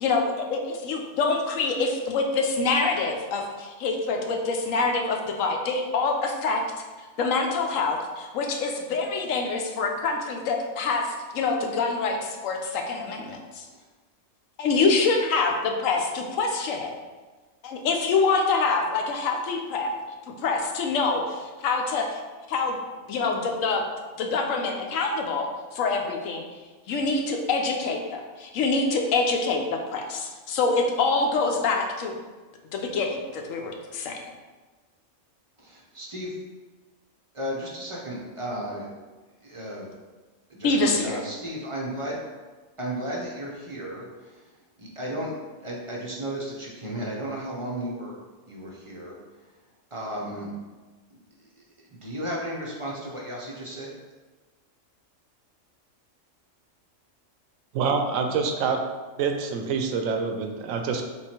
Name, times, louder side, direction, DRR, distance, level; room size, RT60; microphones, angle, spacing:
voice 1, 0.0-6.6 7.2-11.1 11.3-13.7 14.6-16.9 17.6-19.9 20.3-22.2 22.5-22.8 23.1-23.8 24.2-25.5 25.7-26.4 26.9-32.1 32.7-34.2 40.6-41.2, left 4 dB, 90° left, 2 dB, 1.0 m, -25 dB
voice 2, 35.6-36.3 37.3-38.9 39.4-39.9 40.5-42.2 42.8-44.4 44.8-45.3 45.6-48.2 48.5-49.2 49.9-50.5 51.9-53.9, right 1 dB, 40° right, -3 dB, 0.5 m, -34 dB
voice 3, 57.7-58.8 59.2-61.0, right 5 dB, 90° right, 5 dB, 1.0 m, -26 dB
3.6 x 3.0 x 4.2 m, 1.3 s
omnidirectional pair, 1.3 m